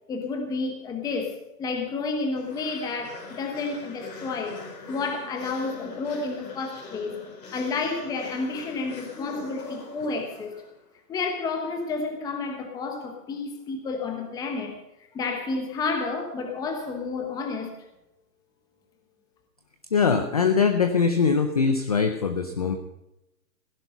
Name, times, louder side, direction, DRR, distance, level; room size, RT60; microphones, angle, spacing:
voice 1, 0.1-4.6 4.9-7.2 7.5-10.6 11.1-14.8 15.1-17.7, left 4 dB, 10° left, 4 dB, 1.1 m, -30 dB
sound 1, 2.4-10.8, left 3 dB, 80° left, 4.5 m, -42 dB
voice 2, 19.9-22.8, left 5 dB, 25° left, 7 dB, 0.5 m, -22 dB
16.5 x 10.5 x 5.4 m, 0.91 s
hypercardioid pair, 155°, 48 cm